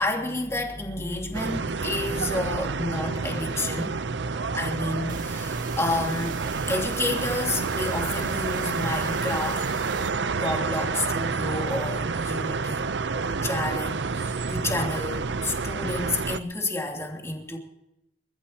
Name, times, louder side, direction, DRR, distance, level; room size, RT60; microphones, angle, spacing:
voice 1, 0.0-3.9 4.5-6.4 6.7-9.6 10.3-12.9 13.3-17.6, left 2 dB, 15° left, 0 dB, 3.0 m, -30 dB
sound 1, 1.3-16.4, right 4 dB, 75° right, 0.7 m, -29 dB
sound 2, 5.1-10.1, right 4 dB, 50° right, 2.0 m, -41 dB
29.0 x 14.0 x 2.9 m, 0.89 s
head